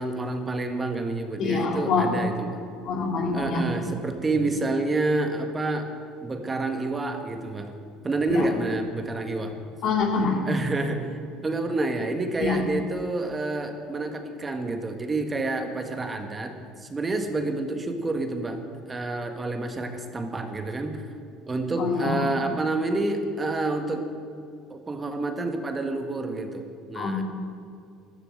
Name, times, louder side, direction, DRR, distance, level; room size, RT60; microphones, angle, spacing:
voice 1, 0.0-2.6 3.3-5.9 6.2-7.7 8.0-9.5 10.4-18.6 18.9-21.0 21.5-24.1 24.7-27.2, right 2 dB, 25° right, 6 dB, 1.7 m, -28 dB
voice 2, 1.4-2.1 2.9-3.7 8.3-8.5 9.8-10.4 12.4-12.6 21.8-22.3 27.0-27.2, left 4 dB, 60° left, 2 dB, 2.7 m, -25 dB
13.5 x 12.0 x 7.9 m, 2.4 s
hypercardioid pair, 70°, 0 cm